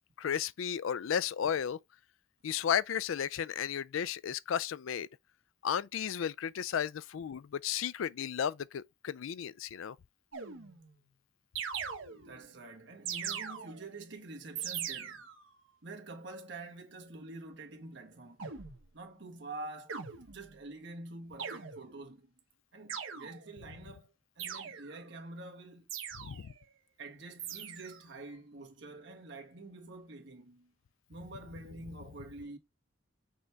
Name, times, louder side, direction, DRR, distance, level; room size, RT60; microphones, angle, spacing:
voice 1, 0.2-1.8 2.4-5.1 5.6-10.0 26.2-26.5, left 8 dB, 80° left, 0.4 m, -34 dB
sound 1, 10.3-11.0 11.6-12.5 13.1-14.0 14.6-15.5 18.4-18.9 19.9-20.6 21.4-22.1 22.9-23.6 24.4-25.1 25.9-26.6 27.4-28.1, right 7 dB, 80° right, 1.2 m, -41 dB
voice 2, 12.1-15.3 15.8-18.5 18.9-20.0 20.2-22.3 22.7-25.9 27.0-30.7 31.1-32.6, right 2 dB, 60° right, 1.5 m, -47 dB
6.4 x 3.5 x 4.5 m
head